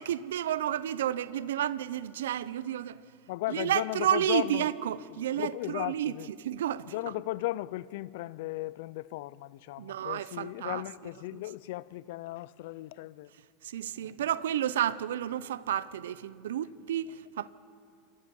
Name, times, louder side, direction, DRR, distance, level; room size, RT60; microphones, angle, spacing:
voice 1, 0.0-3.0 3.5-6.9 9.8-10.8 11.3-11.4 13.6-17.5, right 11 dB, 80° right, 0.8 m, -31 dB
voice 2, 3.3-4.7 5.3-6.3 6.8-13.3 14.0-14.1, left 17 dB, 70° left, 0.6 m, -36 dB
28.5 x 25.0 x 5.5 m
hypercardioid pair, 100°, 0 cm